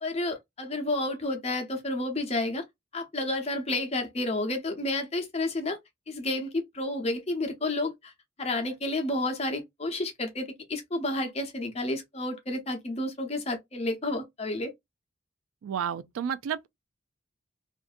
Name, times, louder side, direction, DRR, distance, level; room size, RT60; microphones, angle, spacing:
voice 1, 0.0-2.6 2.9-5.8 6.1-8.1 8.4-14.7, left 2 dB, 30° left, 0.7 m, -31 dB
voice 2, 15.6-16.7, right 8 dB, 85° right, 0.3 m, -31 dB
2.5 x 2.4 x 2.5 m
head